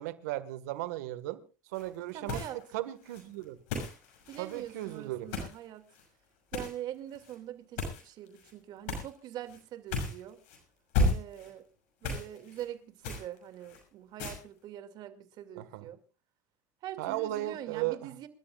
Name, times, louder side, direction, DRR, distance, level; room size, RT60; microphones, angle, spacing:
voice 1, 0.0-1.4 1.7-2.4 2.7-3.6 4.4-5.3 15.6-15.9 17.0-18.0, right 15 dB, 80° right, 1.7 m, -36 dB
sound 1, 1.7-2.0 2.2-2.7 3.0-5.6 5.9-6.1 6.5-6.7 7.1-7.4 7.8-8.5 8.9-9.2 9.5-9.6 9.9-10.6 10.9-11.5 12.0-12.7 13.0-13.8 14.2-14.4, left 2 dB, 80° left, 6.1 m, -34 dB
voice 2, 2.1-2.6 4.3-5.9 6.5-10.4 11.0-11.7 12.0-16.0 16.8-18.3, right 12 dB, 55° right, 2.4 m, -43 dB
27.5 x 13.0 x 2.5 m
supercardioid pair, 95°, 9 cm